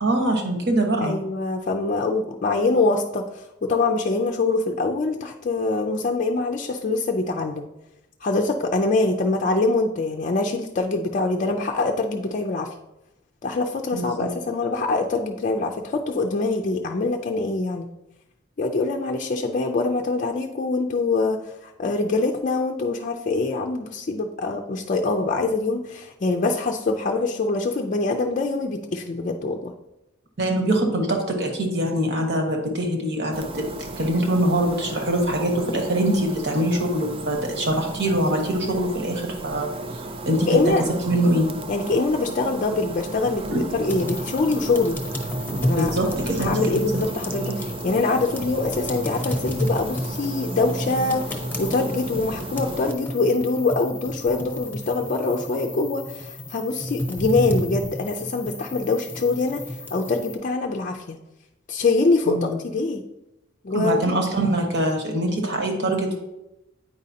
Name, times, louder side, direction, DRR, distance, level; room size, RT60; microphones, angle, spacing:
voice 1, 0.0-1.1 13.9-14.3 30.4-33.6 34.0-39.7 40.3-40.6 41.1-41.5 43.5-43.6 45.7-46.7 47.4-47.5 62.3-62.6 63.7-66.2, right 1 dB, 60° right, 2 dB, 1.3 m, -23 dB
voice 2, 1.0-7.6 8.2-12.7 13.4-17.9 18.6-29.7 40.5-40.8 41.7-45.0 45.6-45.9 46.4-61.2 61.7-63.0 63.6-64.1, left 3 dB, 40° left, 2 dB, 0.4 m, -24 dB
sound 1, 33.3-52.9, right 2 dB, 30° right, 0.4 m, -34 dB
sound 2, 43.9-60.3, left 1 dB, 10° left, 0.8 m, -32 dB
8.8 x 5.1 x 2.8 m, 0.92 s
head